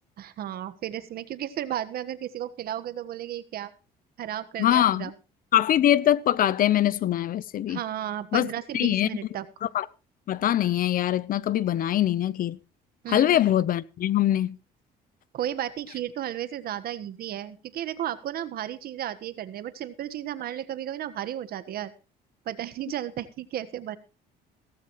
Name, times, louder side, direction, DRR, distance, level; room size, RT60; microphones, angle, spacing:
voice 1, 0.2-3.7 4.2-5.1 7.7-9.5 13.0-13.4 15.3-21.9 22.4-24.0, right 11 dB, 65° right, 1.5 m, -34 dB
voice 2, 4.6-5.1 5.5-7.8 8.3-8.5 8.7-9.1 9.6-9.8 10.3-12.6 13.1-14.6, left 12 dB, 55° left, 0.8 m, -23 dB
16.5 x 14.5 x 3.2 m
cardioid pair, 110°, 17 cm